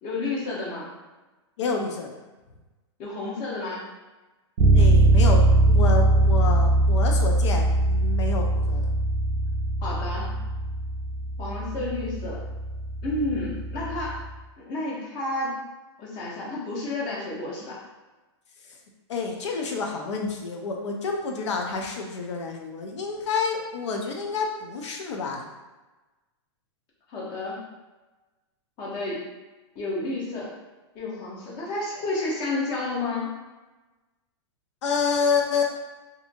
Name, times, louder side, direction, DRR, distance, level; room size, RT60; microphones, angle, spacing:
voice 1, 0.0-0.9 3.0-3.8 9.8-10.3 11.4-12.4 13.0-14.2 14.6-15.6 16.0-17.8 27.1-27.6 28.8-29.3 29.7-30.5 30.9-33.4, left 2 dB, 35° left, -5 dB, 0.9 m, -31 dB
voice 2, 1.6-2.2 4.7-8.9 19.1-25.5 34.8-35.9, left 4 dB, 85° left, 2 dB, 0.6 m, -28 dB
Bass guitar, 4.6-14.3, right 2 dB, 60° right, 0.4 m, -21 dB
2.7 x 2.6 x 2.5 m, 1.2 s
hypercardioid pair, 145°, 15 cm